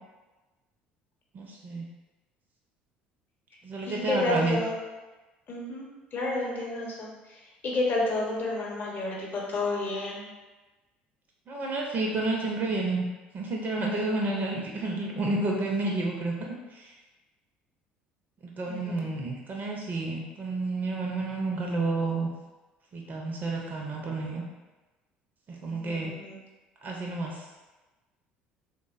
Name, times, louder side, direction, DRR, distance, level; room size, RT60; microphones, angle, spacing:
voice 1, 1.3-1.9 3.6-4.6 11.5-13.0 13.3-16.9 18.6-22.3 22.9-24.4 25.5-26.1 26.8-27.5, right 2 dB, 35° right, -1 dB, 0.4 m, -30 dB
voice 2, 3.5-4.8 5.5-10.3 18.7-19.1 25.7-26.4, left 2 dB, 35° left, -3 dB, 0.8 m, -31 dB
3.3 x 2.0 x 2.3 m, 1.2 s
figure-of-eight pair, 60°, 5 cm